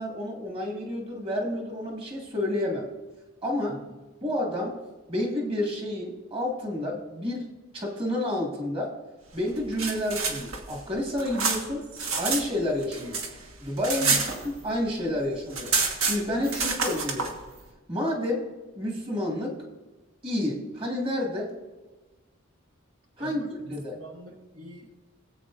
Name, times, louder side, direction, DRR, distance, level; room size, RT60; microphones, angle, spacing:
voice 1, 0.0-2.9 3.4-3.8 4.2-4.8 5.1-7.5 7.7-8.9 9.3-11.8 12.2-13.2 13.6-14.2 14.4-17.3 17.9-19.6 20.2-21.5 23.2-24.0, left 1 dB, 25° right, -1 dB, 1.8 m, -30 dB
sound 1, 9.5-12.4 12.7-14.9 15.2-15.3 15.5-17.3, right 4 dB, 90° right, 1.5 m, -28 dB
voice 2, 23.2-24.9, equal, 65° right, 1 dB, 1.1 m, -42 dB
18.0 x 8.2 x 2.5 m, 1.2 s
head